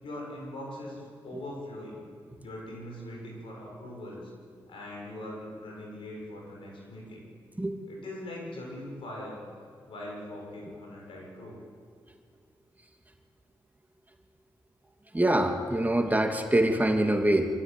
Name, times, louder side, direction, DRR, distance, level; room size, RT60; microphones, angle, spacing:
voice 1, 0.0-2.0 2.4-4.3 4.7-7.3 7.9-9.4 9.9-11.6, left 1 dB, 80° left, -1 dB, 6.7 m, -41 dB
voice 2, 15.1-17.5, right 1 dB, 20° right, 3 dB, 2.6 m, -24 dB
25.0 x 14.0 x 8.6 m, 2.1 s
supercardioid pair, 45°, 9 cm